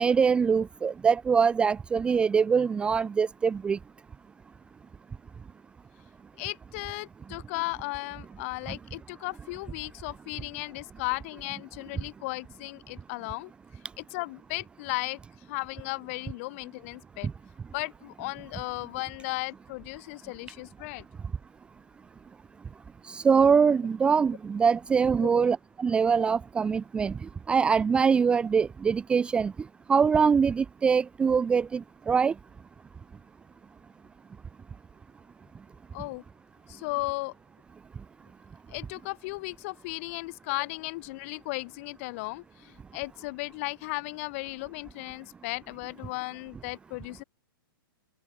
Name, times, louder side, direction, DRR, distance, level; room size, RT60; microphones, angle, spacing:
voice 1, 0.0-3.8 23.1-27.1 27.5-29.5 29.9-32.3, right 6 dB, 10° right, 0.7 m, -23 dB
voice 2, 6.4-13.5 14.0-15.2 15.5-17.3 17.7-21.0 25.2-25.4 35.9-36.2 36.7-37.3 38.7-47.2, left 25 dB, 35° left, 2.5 m, -35 dB
open air
hypercardioid pair, 160°, 12 cm